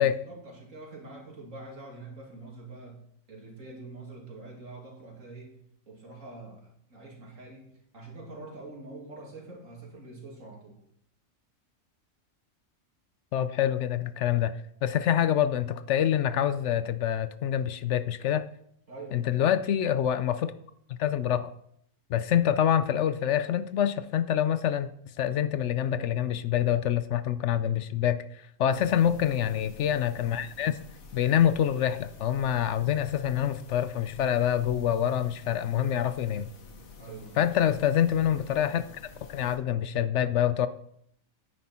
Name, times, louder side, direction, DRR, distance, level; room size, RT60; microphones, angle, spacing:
voice 1, 0.0-3.0 3.3-5.6 5.9-10.8 18.9-19.5 28.6-28.9 37.0-37.5, right 2 dB, 65° right, -1 dB, 2.9 m, -45 dB
voice 2, 13.3-18.4 19.1-20.5 20.9-21.5 22.1-24.9 25.2-30.8 31.1-36.5 37.4-39.0 39.3-40.7, left 10 dB, 65° left, 13 dB, 0.9 m, -26 dB
sound 1, 28.7-39.6, left 3 dB, 80° left, 1.7 m, -49 dB
10.0 x 9.5 x 4.4 m, 0.69 s
omnidirectional pair, 1.4 m